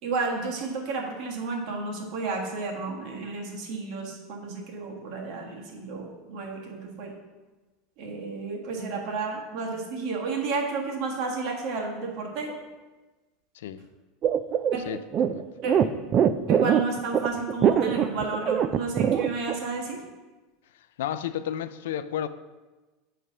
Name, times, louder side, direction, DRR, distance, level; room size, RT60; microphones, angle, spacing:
voice 1, 0.0-7.1 8.0-12.6 14.7-14.8 15.6-15.7 16.5-20.0, right 4 dB, 55° right, 1.6 m, -32 dB
voice 2, 13.6-13.9 14.9-15.5 21.0-22.3, left 10 dB, 85° left, 0.4 m, -32 dB
sound 1, 14.2-19.6, right 8 dB, 35° right, 0.3 m, -22 dB
8.7 x 3.3 x 5.5 m
supercardioid pair, 130°, 0 cm